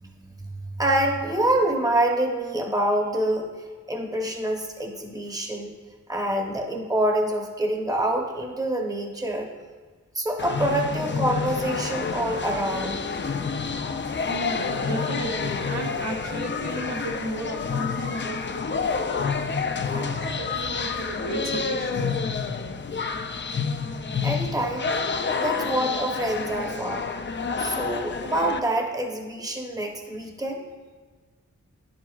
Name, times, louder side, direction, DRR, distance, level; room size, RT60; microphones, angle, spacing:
voice 1, 0.0-3.5 3.9-5.7 6.1-9.5 10.1-13.0 24.2-24.9 25.3-27.0 27.6-30.6, right 1 dB, 10° right, 1 dB, 0.9 m, -26 dB
sound 1, 10.4-28.6, left 5 dB, 40° left, 0.4 m, -29 dB
voice 2, 14.3-19.1 19.9-22.2, right 2 dB, 60° right, 0 dB, 0.9 m, -35 dB
10.5 x 7.6 x 2.4 m, 1.4 s
wide cardioid pair, 100°, 30 cm